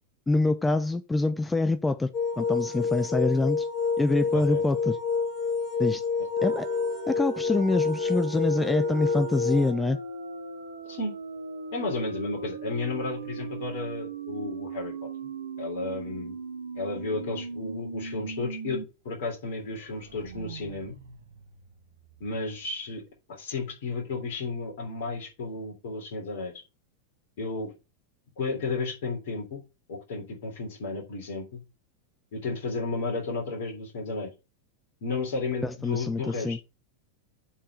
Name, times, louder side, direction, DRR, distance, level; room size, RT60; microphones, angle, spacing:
voice 1, 0.3-2.1 2.4-3.7 4.0-5.0 5.8-6.0 6.4-6.7 7.1-10.0 35.6-36.6, left 2 dB, 10° left, 0.6 m, -25 dB
sound 1, 2.1-9.7, left 5 dB, 35° left, 1.8 m, -28 dB
sound 2, 6.4-18.8 19.2-19.3 19.7-22.3, right 5 dB, 65° right, 1.2 m, -39 dB
voice 2, 11.7-14.9 15.6-16.4 16.7-21.0 22.2-23.0 23.3-26.5 27.4-27.7 28.4-29.6 29.9-31.6 32.3-34.3 35.0-36.6, left 3 dB, 55° left, 3.4 m, -33 dB
7.3 x 4.5 x 6.7 m
figure-of-eight pair, 90°, 0 cm